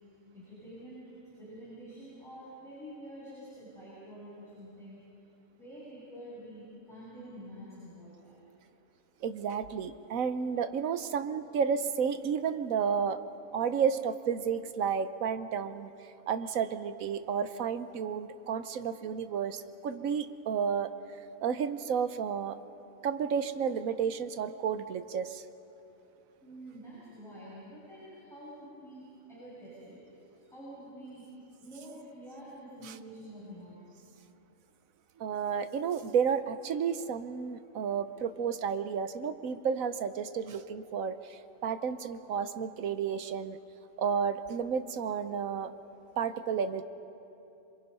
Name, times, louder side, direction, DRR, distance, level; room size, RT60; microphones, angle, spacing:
voice 1, 0.3-1.0 1.4-5.0 5.6-8.4 26.4-30.0 30.5-31.3 31.6-33.8, equal, ahead, -10 dB, 6.9 m, -47 dB
voice 2, 9.2-13.2 13.5-15.9 16.3-22.6 23.0-25.4 32.8-32.9 35.2-43.6 44.0-45.7 46.2-46.8, right 7 dB, 80° right, 11 dB, 1.3 m, -32 dB
27.0 x 23.0 x 5.5 m, 2.9 s
omnidirectional pair, 1.4 m